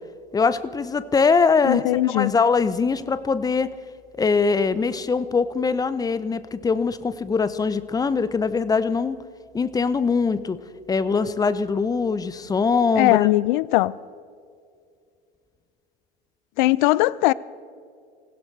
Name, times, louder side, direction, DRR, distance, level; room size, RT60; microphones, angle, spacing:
voice 1, 0.3-1.8 2.1-3.7 4.2-9.2 9.5-10.6 10.9-13.3, left 5 dB, 10° left, 0.7 m, -22 dB
voice 2, 1.6-2.3 13.0-13.9 16.6-17.3, left 18 dB, 50° left, 0.5 m, -19 dB
25.5 x 16.0 x 3.3 m
hypercardioid pair, 95°, 31 cm